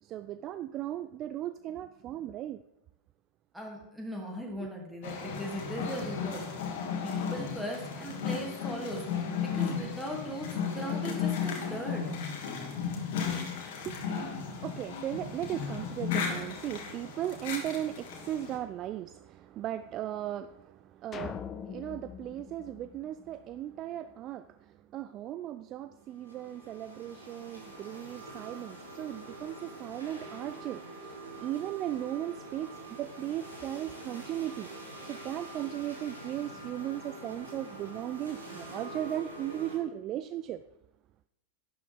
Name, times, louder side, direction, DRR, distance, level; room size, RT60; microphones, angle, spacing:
voice 1, 0.0-2.6 4.6-4.7 13.8-32.7 33.0-34.7 35.0-40.6, right 12 dB, 35° right, 0.3 m, -37 dB
voice 2, 3.5-6.5 7.0-12.0, right 1 dB, 5° right, 2.8 m, -39 dB
sound 1, 5.0-18.6, left 6 dB, 50° left, 2.0 m, -35 dB
sound 2, 21.1-23.7, left 8 dB, 25° left, 0.6 m, -43 dB
sound 3, 26.0-39.8, right 2 dB, 75° right, 3.5 m, -45 dB
11.5 x 9.5 x 3.7 m
figure-of-eight pair, 90°, 0 cm